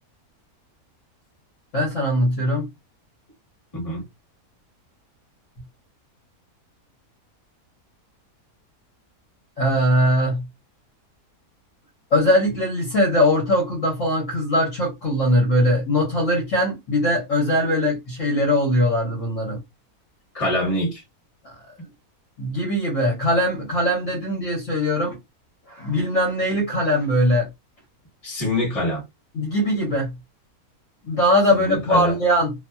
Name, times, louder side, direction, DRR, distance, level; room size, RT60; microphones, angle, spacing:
voice 1, 1.7-2.7 9.6-10.4 12.1-19.6 22.4-25.2 25.7-27.5 29.3-30.1 31.1-32.5, equal, 60° left, 1.2 m, -21 dB
voice 2, 3.7-4.0 20.3-21.0 28.2-29.0 31.5-32.2, left 1 dB, 25° left, 1.5 m, -24 dB
2.8 x 2.6 x 2.3 m
omnidirectional pair, 1.6 m